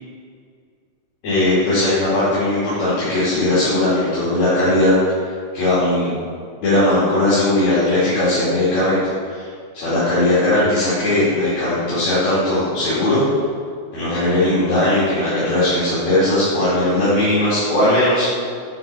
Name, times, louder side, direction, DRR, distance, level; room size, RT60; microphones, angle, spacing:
voice 1, 1.2-4.9 5.2-6.1 6.6-9.0 9.3-9.5 9.7-13.2 13.9-18.3, left 1 dB, 70° left, -12 dB, 4.0 m, -18 dB
10.5 x 5.3 x 6.1 m, 2.2 s
omnidirectional pair, 3.3 m